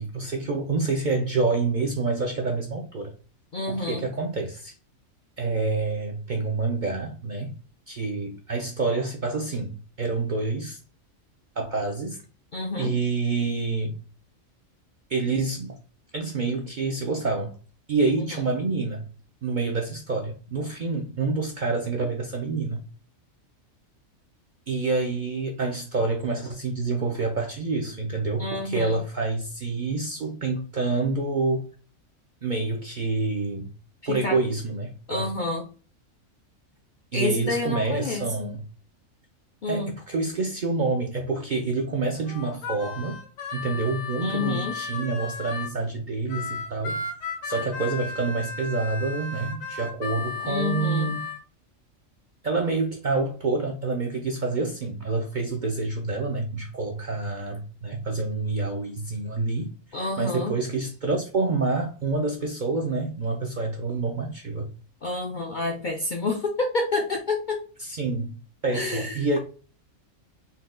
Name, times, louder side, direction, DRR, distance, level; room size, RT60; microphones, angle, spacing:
voice 1, 0.0-3.1 3.7-4.7 5.4-7.5 7.9-10.8 11.6-12.2 12.8-13.9 15.1-15.8 16.1-17.5 17.9-19.1 19.4-22.8 24.7-31.6 32.4-33.7 34.1-35.3 37.1-38.6 39.7-43.2 43.5-47.1 47.4-51.3 52.4-64.7 67.8-68.3 68.6-69.4, right 3 dB, 55° right, 0.5 m, -27 dB
voice 2, 3.5-4.0 12.5-12.9 18.2-18.5 28.4-29.0 34.0-34.4 35.1-35.6 37.1-38.5 39.6-39.9 44.2-44.8 50.4-51.1 59.9-60.5 65.0-67.6 68.7-69.4, left 3 dB, 60° left, 0.5 m, -29 dB
Harmonica, 42.3-45.7 46.3-51.4, left 4 dB, 80° left, 1.2 m, -34 dB
4.2 x 2.2 x 3.7 m
omnidirectional pair, 1.4 m